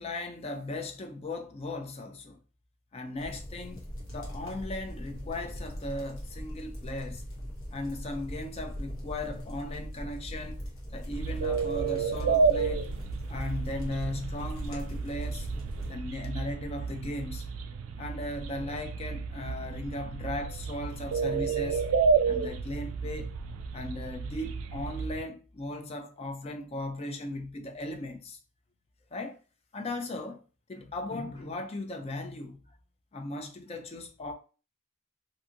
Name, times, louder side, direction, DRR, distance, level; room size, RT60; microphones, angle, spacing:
voice 1, 0.0-2.4 2.9-3.9 4.1-7.3 7.7-10.6 10.9-12.9 13.3-15.5 15.9-17.4 18.0-21.8 22.3-23.3 23.7-28.4 29.1-29.4 29.7-30.4 30.7-32.6 33.1-34.3, left 2 dB, 30° left, 0.3 m, -37 dB
sound 1, 3.2-15.9, equal, 70° left, 1.0 m, -40 dB
sound 2, 11.1-25.2, right 5 dB, 70° right, 0.3 m, -31 dB
2.7 x 2.5 x 2.4 m
head